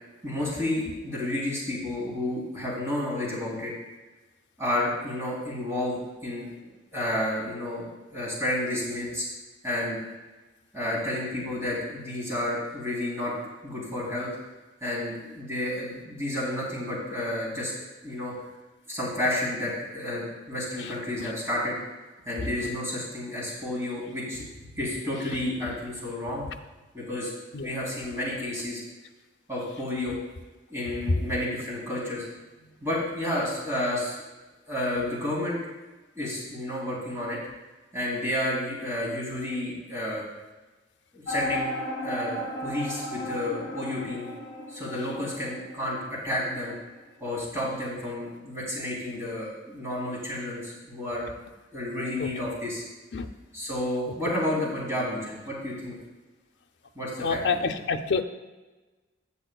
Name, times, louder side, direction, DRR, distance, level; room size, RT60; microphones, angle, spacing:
voice 1, 0.2-3.7 4.6-9.2 9.6-10.0 10.7-13.3 13.6-14.3 14.8-17.7 18.0-18.3 18.9-21.8 22.2-26.5 26.9-27.3 27.6-28.8 29.5-30.2 30.7-32.3 32.8-34.2 34.7-35.6 36.1-37.4 37.9-40.2 41.1-41.7 42.0-44.3 44.7-46.0 46.2-46.7 47.2-51.3 51.7-52.8 53.5-55.9 56.9-57.7, left 1 dB, 15° right, -6 dB, 3.3 m, -31 dB
sound 1, 41.3-46.8, equal, 50° left, 2.4 m, -35 dB
voice 2, 57.2-58.2, left 4 dB, 70° left, 7 dB, 0.6 m, -27 dB
16.0 x 6.8 x 2.3 m, 1.2 s
head